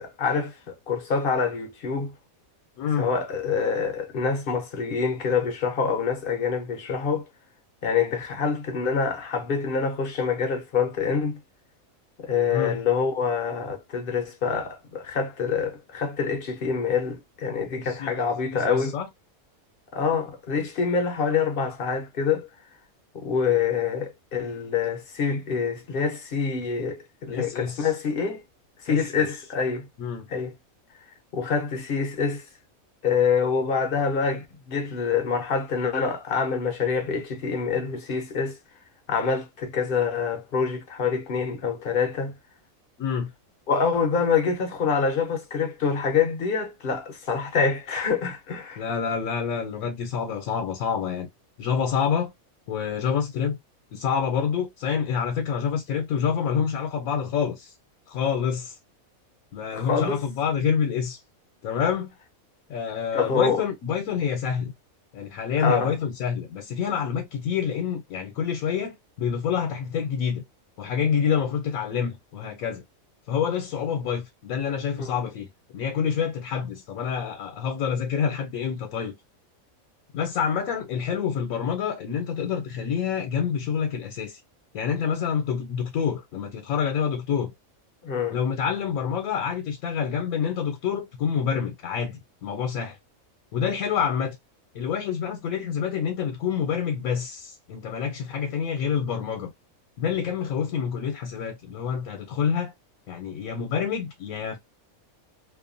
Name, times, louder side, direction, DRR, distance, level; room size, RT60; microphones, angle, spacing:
voice 1, 0.0-2.1 3.0-7.2 7.8-11.4 12.2-19.0 19.9-22.5 23.1-28.4 28.8-29.9 30.3-30.5 31.3-32.4 33.0-38.6 39.1-42.3 43.7-48.8 59.7-60.2 63.1-63.6 65.6-66.0 75.0-75.2 88.0-88.4, left 5 dB, 55° left, 0.7 m, -26 dB
voice 2, 2.8-3.1 12.5-12.8 17.8-19.1 27.3-27.9 28.9-29.3 30.0-30.3 43.0-43.3 48.8-51.3 51.6-52.3 52.7-53.6 53.9-57.7 58.1-58.7 59.5-61.2 61.6-62.1 62.7-64.7 65.1-70.4 70.8-72.8 73.3-75.5 75.7-79.1 80.1-84.4 84.7-87.5 88.3-93.0 93.5-94.4 94.7-99.5 100.0-102.7 103.1-104.6, left 7 dB, 75° left, 1.1 m, -27 dB
2.6 x 2.2 x 2.5 m
omnidirectional pair, 1.5 m